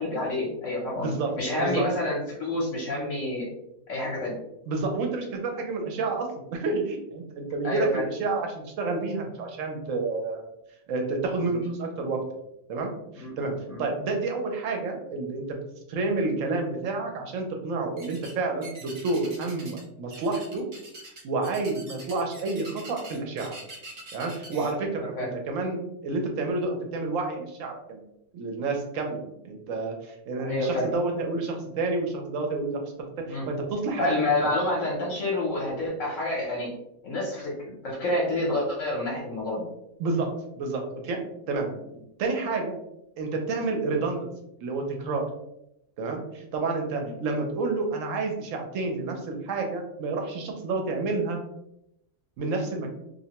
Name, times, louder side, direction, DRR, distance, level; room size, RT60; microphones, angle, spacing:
voice 1, 0.0-1.1 1.4-3.5 3.9-4.3 7.6-8.0 11.5-11.6 13.2-13.8 25.0-25.3 30.4-30.9 33.3-33.5 34.0-36.7 37.0-37.5 37.8-39.6 47.0-47.1, left 2 dB, 65° left, -4 dB, 1.0 m, -28 dB
voice 2, 1.0-1.8 4.7-10.4 10.9-12.2 12.7-15.6 15.9-20.7 21.2-23.5 24.1-25.1 25.5-28.0 28.3-32.8 33.3-34.6 40.0-40.3 40.6-41.2 41.5-41.7 42.2-42.7 43.2-44.3 44.6-45.3 46.0-51.4 52.4-52.9, right 3 dB, 70° right, 3 dB, 0.9 m, -29 dB
sound 1, 18.0-18.3 18.6-19.8 20.1-24.7, right 2 dB, 50° right, 0.5 m, -44 dB
2.5 x 2.1 x 2.8 m, 0.81 s
omnidirectional pair, 1.5 m